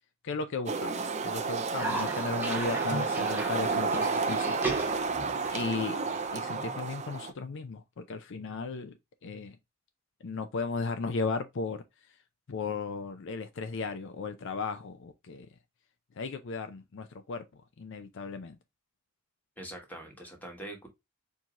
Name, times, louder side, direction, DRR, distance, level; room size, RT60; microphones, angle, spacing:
voice 1, 0.2-5.1 5.5-6.0 6.3-9.0 9.2-9.6 10.2-12.1 12.5-15.5 16.2-17.4 17.8-18.6, left 4 dB, 55° left, 0.4 m, -36 dB
sound 1, 0.7-7.3, right 4 dB, 30° right, 0.5 m, -31 dB
Cough, 1.8-6.8, right 2 dB, 10° right, 0.8 m, -37 dB
voice 2, 19.6-20.9, right 1 dB, 10° left, 1.3 m, -43 dB
4.6 x 2.8 x 3.6 m
head